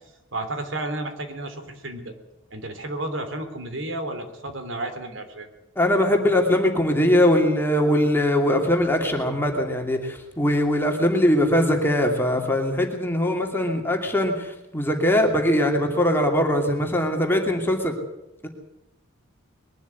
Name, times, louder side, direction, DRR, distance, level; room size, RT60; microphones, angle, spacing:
voice 1, 0.3-2.1 2.5-5.5, right 2 dB, 70° right, 7 dB, 3.3 m, -32 dB
voice 2, 5.8-17.9 18.4-18.5, left 1 dB, 10° left, 2 dB, 2.6 m, -21 dB
21.5 x 12.5 x 9.5 m, 0.91 s
head